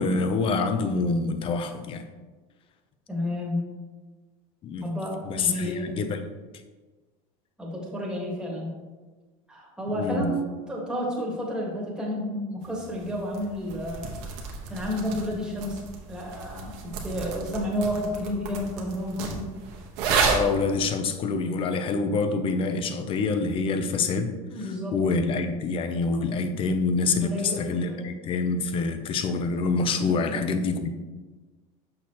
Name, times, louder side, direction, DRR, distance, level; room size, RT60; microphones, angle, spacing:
voice 1, 0.0-2.0 4.6-4.9 5.2-6.2 9.9-10.3 20.2-30.9, left 4 dB, 35° left, 9 dB, 0.5 m, -26 dB
voice 2, 3.1-3.7 4.8-6.0 7.6-8.7 9.5-10.4 10.7-14.1 14.7-15.8 16.1-19.5 24.5-25.0 26.0-26.2 27.1-27.6 27.9-28.0 30.0-30.2, left 1 dB, 5° right, -3 dB, 1.5 m, -31 dB
sound 1, 12.6-20.7, right 5 dB, 70° right, 1.2 m, -32 dB
6.5 x 5.7 x 2.9 m, 1.3 s
cardioid pair, 145°, 17 cm